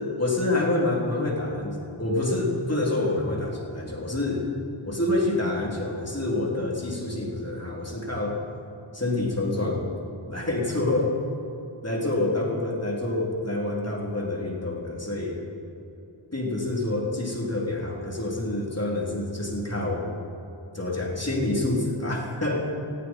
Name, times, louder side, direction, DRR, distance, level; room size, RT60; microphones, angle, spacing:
voice 1, 0.2-4.5 4.8-8.4 8.9-9.9 10.3-11.1 11.8-15.4 16.3-20.1 20.7-22.7, left 2 dB, 30° left, -2 dB, 3.6 m, -27 dB
19.0 x 15.5 x 4.6 m, 3.0 s
wide cardioid pair, 55°, 48 cm